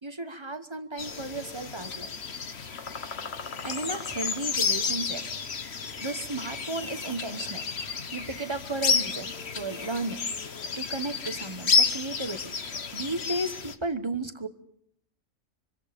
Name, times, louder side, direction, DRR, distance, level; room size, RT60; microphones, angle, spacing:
voice 1, 0.0-2.1 3.6-5.3 5.8-7.7 8.1-10.3 10.8-14.5, right 2 dB, 25° right, 9 dB, 1.1 m, -34 dB
sound 1, 1.0-13.7, left 5 dB, 55° left, 1.5 m, -31 dB
25.5 x 24.0 x 5.2 m, 0.74 s
omnidirectional pair, 1.3 m